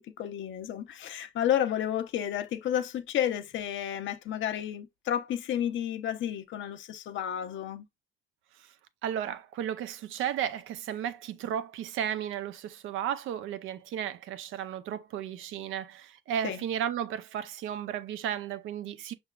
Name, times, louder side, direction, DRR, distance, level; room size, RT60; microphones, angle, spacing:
voice 1, 0.0-7.8 16.4-16.6, left 10 dB, 75° left, 0.7 m, -31 dB
voice 2, 9.0-19.1, right 10 dB, 85° right, 0.6 m, -34 dB
5.8 x 3.4 x 2.3 m
cardioid pair, 90°, 20 cm